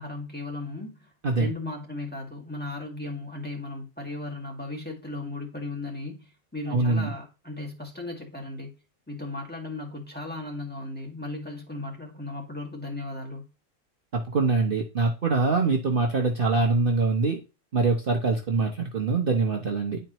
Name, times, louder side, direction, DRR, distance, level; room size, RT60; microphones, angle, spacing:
voice 1, 0.0-1.1 1.4-8.8 9.1-13.5, left 2 dB, 5° left, 1.8 m, -36 dB
voice 2, 6.7-7.1 14.1-17.4 17.7-20.0, right 3 dB, 45° right, 1.0 m, -24 dB
10.5 x 4.5 x 3.0 m
omnidirectional pair, 1.5 m